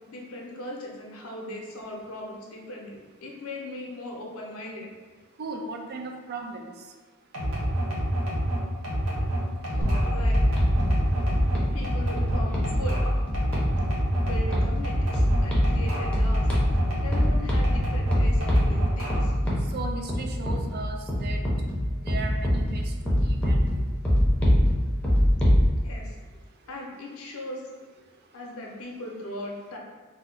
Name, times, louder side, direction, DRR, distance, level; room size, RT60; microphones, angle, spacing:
voice 1, 0.1-4.9 9.7-10.4 11.7-13.0 14.2-16.4 17.0-19.3 25.8-26.1 26.7-27.6 28.3-29.8, left 1 dB, 90° left, -1 dB, 0.6 m, -38 dB
voice 2, 5.4-6.7 19.7-21.4 22.0-23.6, right 3 dB, 50° right, 3 dB, 0.4 m, -37 dB
sound 1, 7.3-17.3 17.6-19.4, equal, 90° right, 0.9 m, -27 dB
sound 2, 9.8-25.7, equal, 5° left, 0.6 m, -25 dB
2.7 x 2.1 x 3.7 m, 1.4 s
head